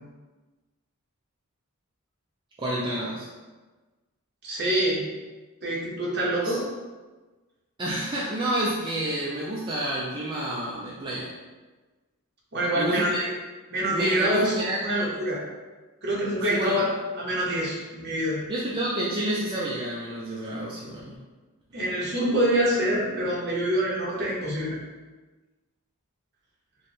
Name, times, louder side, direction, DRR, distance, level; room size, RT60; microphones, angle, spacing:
voice 1, 2.6-3.3 6.4-6.6 7.8-11.3 12.7-13.2 13.9-14.8 16.5-16.8 18.5-21.1, right 1 dB, 20° right, -6 dB, 0.4 m, -29 dB
voice 2, 4.4-5.0 5.6-6.6 12.5-13.3 13.7-14.5 14.8-15.4 16.0-16.8 17.2-18.4 21.7-24.8, right 1 dB, 50° right, -5 dB, 1.0 m, -25 dB
3.2 x 2.2 x 4.2 m, 1.3 s
head